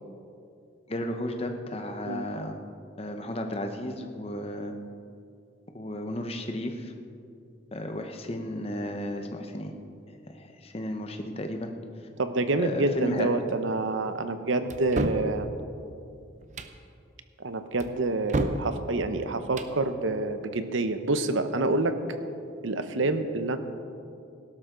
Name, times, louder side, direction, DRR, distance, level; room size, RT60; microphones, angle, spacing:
voice 1, 0.9-2.6 3.0-4.7 5.7-6.9 7.7-9.7 10.3-11.7 12.6-13.3, left 1 dB, 30° left, 5 dB, 0.9 m, -33 dB
voice 2, 12.2-15.5 17.4-22.0 22.6-23.6, right 2 dB, 80° right, 9 dB, 0.8 m, -27 dB
sound 1, 14.7-15.3 16.4-16.8 17.8-18.7 19.4-19.8, right 2 dB, 40° right, 0.6 m, -30 dB
17.0 x 12.0 x 3.9 m, 2.5 s
head